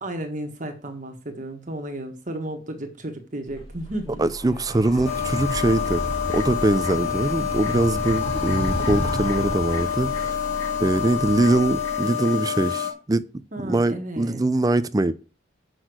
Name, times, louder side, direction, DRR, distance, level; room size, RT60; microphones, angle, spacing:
voice 1, 0.0-4.3 13.5-14.4, right 1 dB, 40° right, 1.6 m, -33 dB
Animal, 3.5-12.1, equal, 30° left, 2.2 m, -32 dB
voice 2, 4.2-6.0 6.3-10.4 10.8-13.2 13.6-15.1, right 2 dB, 20° right, 0.4 m, -22 dB
sound 1, 5.0-12.9, left 8 dB, 80° left, 2.2 m, -27 dB
8.0 x 6.2 x 6.2 m
head